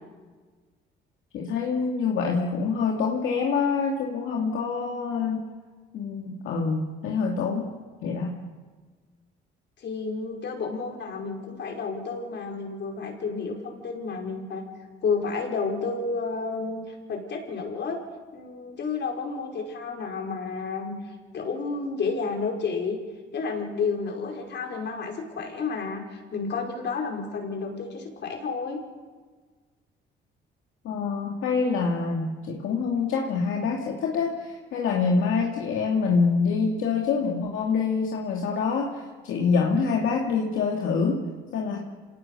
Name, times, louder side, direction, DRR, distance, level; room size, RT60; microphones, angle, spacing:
voice 1, 1.3-5.4 5.9-7.7 8.0-8.4 30.8-41.8, left 5 dB, 80° left, 0 dB, 2.5 m, -26 dB
voice 2, 9.8-14.6 15.0-16.8 17.1-18.0 18.3-23.0 23.3-28.8, left 4 dB, 60° left, 1 dB, 5.4 m, -31 dB
27.0 x 18.5 x 6.9 m, 1.4 s
cardioid pair, 90°, 20 cm